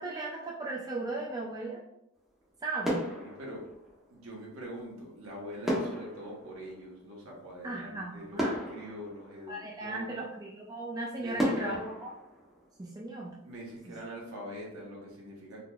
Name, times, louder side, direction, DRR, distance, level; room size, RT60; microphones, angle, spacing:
voice 1, 0.0-1.8 2.6-3.1 7.6-8.6 9.5-12.1 12.8-13.4, right 2 dB, 15° right, -3 dB, 0.3 m, -37 dB
sound 1, 2.2-2.5 2.8-4.3 5.7-7.6 8.0-8.1 8.4-10.0 10.5-10.6 11.4-13.3 13.6-13.8, equal, ahead, 0.8 m, -35 dB
voice 2, 3.2-3.7 4.1-10.2 11.1-11.8 13.4-15.6, equal, 65° right, -3 dB, 1.0 m, -43 dB
3.9 x 2.9 x 2.2 m, 0.83 s
head